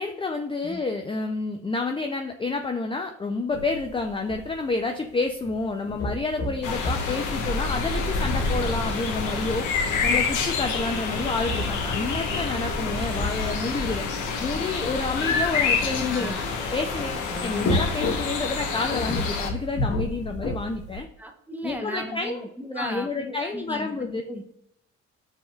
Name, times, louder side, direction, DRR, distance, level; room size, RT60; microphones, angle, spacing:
voice 1, 0.0-9.7 10.0-14.1 14.4-16.4 16.7-21.1 21.6-22.5 22.7-24.2, left 3 dB, 20° left, 5 dB, 0.4 m, -29 dB
sound 1, 3.5-16.8 17.2-21.0, left 1 dB, 50° left, 1.7 m, -33 dB
sound 2, 6.6-19.5, left 4 dB, 80° left, 1.0 m, -27 dB
voice 2, 16.1-16.5 17.3-17.7 21.2-24.5, equal, 5° right, 4 dB, 0.9 m, -36 dB
6.2 x 3.5 x 2.3 m, 0.75 s
cardioid pair, 90°, 30 cm